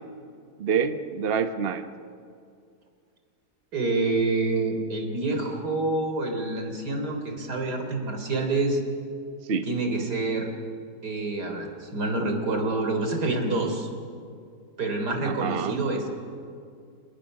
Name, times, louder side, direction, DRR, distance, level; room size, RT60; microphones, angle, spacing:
voice 1, 0.6-1.9 9.5-9.7 15.2-15.8, right 6 dB, 40° right, 9 dB, 1.1 m, -27 dB
voice 2, 3.7-8.8 9.7-10.5 11.0-13.9 14.8-16.1, right 2 dB, 90° right, 4 dB, 4.1 m, -27 dB
29.0 x 27.5 x 6.6 m, 2.3 s
omnidirectional pair, 1.7 m